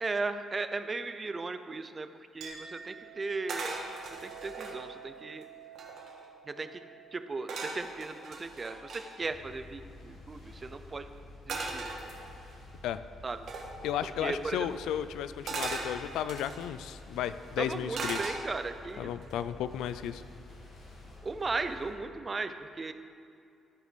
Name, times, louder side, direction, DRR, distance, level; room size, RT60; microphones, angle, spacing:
voice 1, 0.0-2.1 2.3-3.8 4.2-5.5 6.5-6.8 7.1-11.1 11.5-11.9 13.2-13.4 14.2-14.7 17.6-19.1 21.2-22.9, right 3 dB, 30° right, 10 dB, 0.5 m, -36 dB
Chink clink, 2.4-9.5, right 8 dB, 90° right, 1.3 m, -51 dB
sound 1, 3.5-4.8 5.4-5.5 5.7-6.3 7.5-9.0 11.5-12.6 13.5-13.7 15.5-16.7 17.9-18.8 19.2-19.6, right 3 dB, 65° right, 1.4 m, -38 dB
sound 2, 9.2-21.9, left 2 dB, 65° left, 1.9 m, -50 dB
voice 2, 13.8-18.3 19.0-20.2, left 10 dB, 90° left, 13 dB, 0.3 m, -34 dB
12.5 x 5.1 x 5.1 m, 2.6 s
cardioid pair, 90°, 0 cm